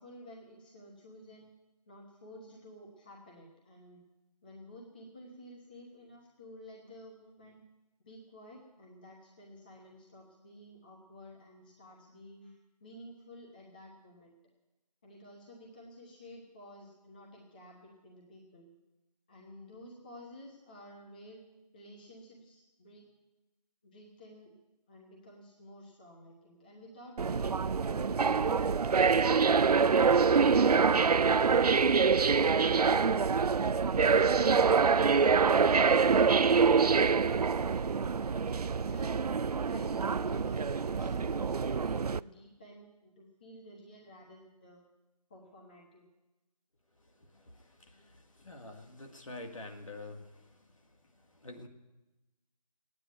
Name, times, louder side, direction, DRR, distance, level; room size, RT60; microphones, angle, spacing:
voice 1, 0.0-1.5 1.9-4.0 4.4-7.6 8.0-14.4 15.0-18.7 19.3-21.4 21.7-23.1 23.8-24.5 24.9-27.5 27.8-29.3 34.2-35.3 35.8-36.2 38.0-39.1 39.6-44.8 45.3-46.0, equal, 15° left, -2 dB, 1.1 m, -52 dB
sound 1, 27.2-42.2, right 5 dB, 65° right, 0.4 m, -25 dB
voice 2, 47.0-51.7, left 2 dB, 50° left, 4 dB, 2.0 m, -48 dB
15.0 x 9.7 x 9.2 m, 1.1 s
figure-of-eight pair, 170°, 21 cm